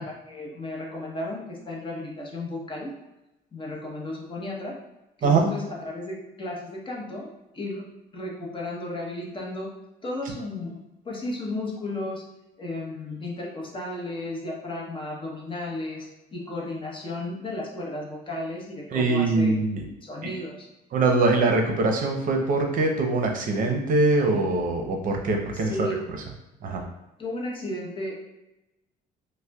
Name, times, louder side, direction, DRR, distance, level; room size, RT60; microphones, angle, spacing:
voice 1, 0.0-2.9 3.5-4.8 5.2-7.9 8.1-9.7 10.0-12.3 12.6-19.6 20.0-20.7 25.5-26.0 27.2-28.2, left 1 dB, 30° left, -2 dB, 0.9 m, -34 dB
voice 2, 18.9-19.8 20.2-20.3 20.9-25.9 26.6-26.8, right 3 dB, 55° right, 2 dB, 0.6 m, -23 dB
5.3 x 2.1 x 2.3 m, 0.93 s
cardioid pair, 110°, 17 cm